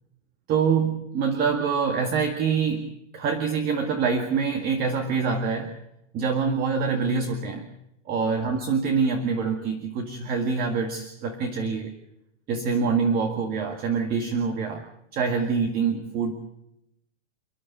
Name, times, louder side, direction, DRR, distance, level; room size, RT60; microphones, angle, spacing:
voice 1, 0.5-5.7 6.1-7.7 8.1-11.9 12.5-14.9 15.1-16.5, right 5 dB, 25° right, 4 dB, 1.9 m, -25 dB
29.5 x 10.0 x 9.8 m, 0.81 s
hypercardioid pair, 150°, 36 cm